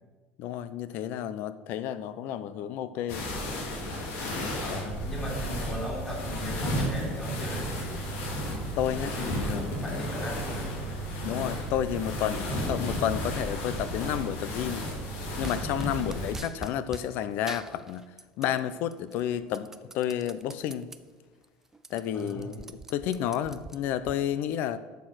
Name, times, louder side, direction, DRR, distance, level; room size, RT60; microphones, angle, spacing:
voice 1, 0.4-3.3 4.7-4.8 8.8-9.7 11.2-14.9 15.4-18.1 18.4-20.9 21.9-24.8, left 10 dB, 60° left, 14 dB, 0.7 m, -31 dB
sound 1, 3.1-16.3, equal, 80° left, 3.5 m, -33 dB
voice 2, 4.6-8.0 9.0-10.8 16.0-16.3 22.1-22.5, equal, 15° left, -4 dB, 3.7 m, -38 dB
sound 2, 15.4-17.1 17.5-18.6 18.9-21.0 21.4-21.5 21.7-24.2, right 3 dB, 10° right, 0.4 m, -44 dB
11.5 x 6.9 x 6.4 m, 1.3 s
cardioid pair, 150°, 4 cm